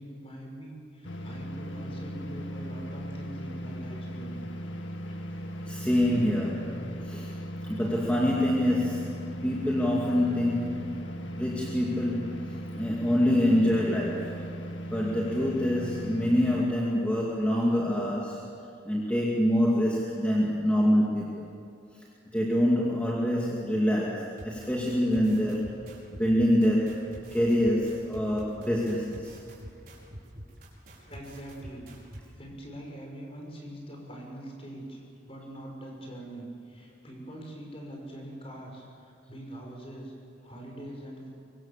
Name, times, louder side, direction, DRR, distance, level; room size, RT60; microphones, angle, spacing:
voice 1, 0.0-4.5 5.1-5.2 31.0-31.9 32.4-40.1 40.4-41.3, right 1 dB, 30° left, 0 dB, 5.9 m, -43 dB
sound 1, 1.0-16.6, equal, 80° left, 1.9 m, -38 dB
voice 2, 5.7-7.3 7.6-12.5 12.7-14.4 14.9-18.4 18.8-21.5 22.3-25.7 26.1-29.4, equal, 5° left, -4 dB, 2.4 m, -26 dB
sound 2, 24.4-32.2, right 1 dB, 50° right, 5.5 m, -46 dB
24.5 x 24.0 x 7.4 m, 2.4 s
head